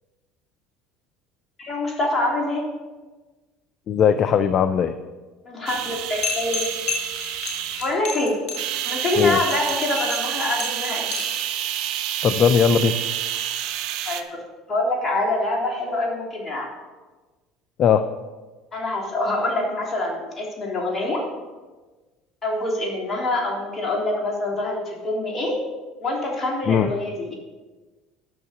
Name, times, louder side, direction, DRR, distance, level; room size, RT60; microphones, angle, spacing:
voice 1, 1.6-2.7 5.5-6.7 7.8-8.4 8.8-11.1 14.1-14.4 14.7-16.7 18.7-21.2 22.4-25.6 26.0-27.3, left 2 dB, 30° left, -1 dB, 3.5 m, -25 dB
voice 2, 3.9-4.9 9.2-9.4 12.2-13.0 17.8-18.0 26.7-26.9, left 7 dB, 50° left, 11 dB, 0.5 m, -18 dB
sound 1, 5.7-8.0 8.6-14.2, right 11 dB, 70° right, 0.7 m, -28 dB
sound 2, 6.2-11.4, left 4 dB, 65° left, 2.2 m, -30 dB
11.0 x 6.4 x 6.5 m, 1.3 s
hypercardioid pair, 75°, 0 cm